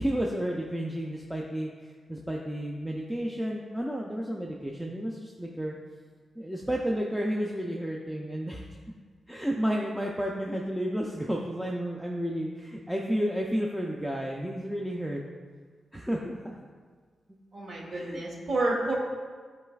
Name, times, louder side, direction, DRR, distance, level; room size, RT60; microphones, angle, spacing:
voice 1, 0.0-1.7 2.1-5.7 6.4-8.6 9.3-15.2 15.9-16.7 17.9-18.2, equal, 5° right, -1 dB, 0.4 m, -31 dB
voice 2, 17.5-18.9, right 2 dB, 60° right, -2 dB, 1.0 m, -29 dB
11.5 x 4.0 x 2.3 m, 1.6 s
wide cardioid pair, 125°, 0 cm